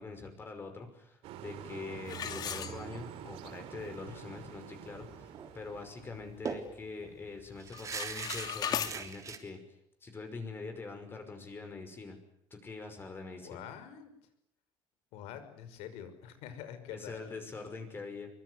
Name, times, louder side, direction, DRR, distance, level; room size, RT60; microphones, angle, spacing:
voice 1, 0.0-9.6 10.0-12.2 12.5-13.6 16.9-18.3, left 4 dB, 20° left, 6 dB, 5.6 m, -44 dB
sound 1, 1.2-6.4, right 10 dB, 75° right, 3.2 m, -47 dB
sound 2, 2.1-3.3 3.8-3.9 4.4-4.5 4.9-5.2 5.7-6.8 7.1-7.4 7.7-8.9, left 8 dB, 40° left, 2.3 m, -38 dB
sound 3, 5.3-5.5 5.8-5.9 6.5-9.4, right 6 dB, 30° right, 3.5 m, -41 dB
voice 2, 6.1-6.4 13.4-14.1 15.1-17.3, left 9 dB, 85° left, 10 dB, 5.7 m, -46 dB
24.5 x 24.0 x 9.7 m, 0.75 s
cardioid pair, 150°, 10 cm